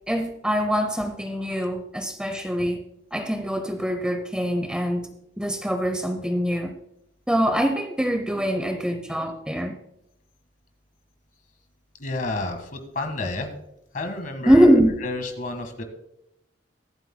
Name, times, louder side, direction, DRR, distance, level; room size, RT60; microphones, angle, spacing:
voice 1, 0.1-2.8 3.1-5.1 5.4-6.7 7.3-9.7 14.5-15.0, equal, 5° right, 6 dB, 0.7 m, -23 dB
voice 2, 12.0-13.5 13.9-14.7 15.0-15.8, left 2 dB, 45° left, 6 dB, 1.7 m, -30 dB
23.5 x 7.9 x 2.2 m, 0.80 s
head